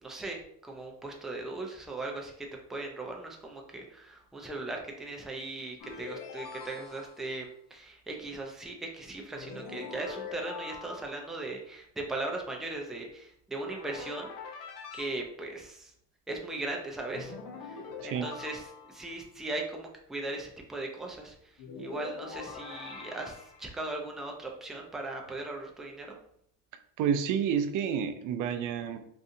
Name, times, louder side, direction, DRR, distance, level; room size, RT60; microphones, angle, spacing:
voice 1, 0.0-7.5 7.7-14.3 14.9-15.9 16.3-17.3 17.6-17.8 18.0-21.4 21.8-26.2, right 2 dB, ahead, 0 dB, 0.4 m, -38 dB
sound 1, 5.8-7.4 9.3-11.4 13.7-15.1 17.1-19.2 21.6-23.7, left 5 dB, 60° left, 0.7 m, -43 dB
voice 2, 27.0-29.1, right 7 dB, 60° right, 9 dB, 0.4 m, -29 dB
2.6 x 2.5 x 2.5 m, 0.69 s
cardioid pair, 90°, 37 cm